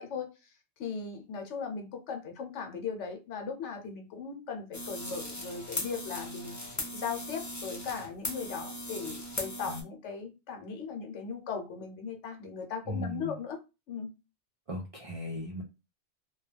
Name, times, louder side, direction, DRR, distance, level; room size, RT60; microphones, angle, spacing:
voice 1, 0.0-6.6 6.9-13.6 13.9-14.1, left 6 dB, 85° left, 1.0 m, -38 dB
sound 1, 4.7-9.8, left 1 dB, 30° left, 0.3 m, -38 dB
voice 2, 12.9-13.4 14.7-15.6, left 1 dB, 50° right, 0.4 m, -37 dB
2.3 x 2.2 x 3.2 m
omnidirectional pair, 1.2 m